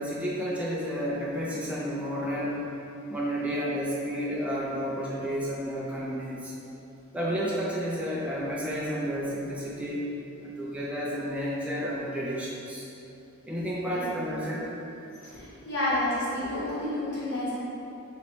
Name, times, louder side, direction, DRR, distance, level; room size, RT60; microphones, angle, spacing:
voice 1, 0.0-2.7 3.1-6.5 7.1-10.1 10.4-12.9 13.5-14.7, equal, 5° right, -7 dB, 0.4 m, -31 dB
voice 2, 13.9-14.6 15.2-17.6, left 1 dB, 50° left, -10 dB, 0.9 m, -31 dB
3.1 x 2.7 x 4.3 m, 2.8 s
head